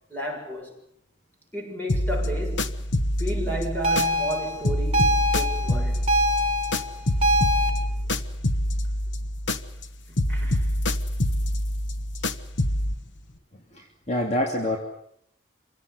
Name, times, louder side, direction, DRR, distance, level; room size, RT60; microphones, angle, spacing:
voice 1, 0.1-0.7 1.5-2.9 3.2-6.1 10.1-10.8, right 1 dB, 10° left, 7.0 m, -33 dB
sound 1, 1.9-4.4 4.6-9.9 10.2-13.0, left 1 dB, 85° left, 1.4 m, -26 dB
sound 2, 3.8-7.7, equal, 35° right, 6.3 m, -24 dB
voice 2, 13.5-14.8, left 1 dB, 40° left, 3.0 m, -27 dB
26.5 x 17.5 x 9.9 m
head